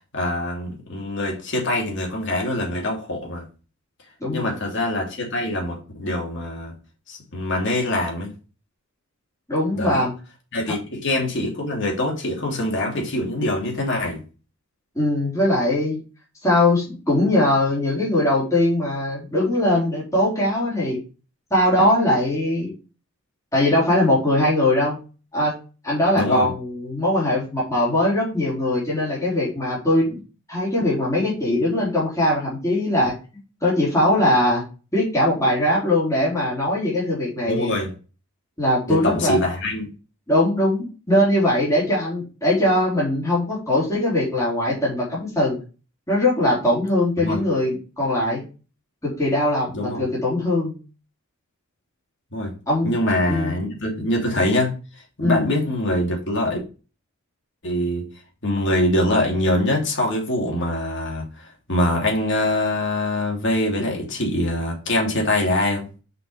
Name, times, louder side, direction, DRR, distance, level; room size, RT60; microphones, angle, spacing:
voice 1, 0.1-3.5 4.3-6.7 7.1-8.3 9.7-10.0 10.5-14.2 26.1-26.5 37.5-37.9 38.9-39.9 47.2-47.4 49.7-50.1 52.3-52.5 52.8-54.7 55.2-56.6 57.6-58.1 58.4-65.9, left 1 dB, 55° left, 2.9 m, -24 dB
voice 2, 4.2-4.5 9.5-10.1 10.7-10.8 15.0-16.0 16.4-21.0 21.5-22.7 23.5-25.0 25.3-25.5 25.8-30.2 30.5-33.1 33.6-34.6 34.9-37.7 38.6-39.4 40.3-45.6 46.1-48.4 49.0-50.7 52.7-52.9 53.3-53.6 55.2-55.5, left 1 dB, 15° left, 3.8 m, -21 dB
6.1 x 5.5 x 5.0 m
head